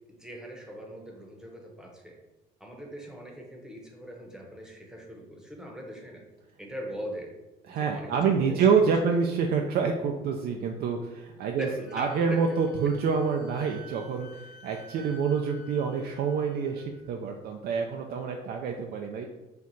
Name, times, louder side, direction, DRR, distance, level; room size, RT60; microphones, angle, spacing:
voice 1, 0.1-2.2 2.6-6.2 6.6-7.3 7.7-8.7 9.0-9.2 11.4-12.6, equal, 5° right, 0 dB, 0.8 m, -41 dB
voice 2, 7.7-11.7 11.9-19.3, right 5 dB, 65° right, 3 dB, 0.4 m, -27 dB
Wind instrument woodwind instrument, 11.9-17.0, equal, 75° left, 0.9 m, -52 dB
4.4 x 2.4 x 3.9 m, 1.0 s
cardioid pair, 110°, 17 cm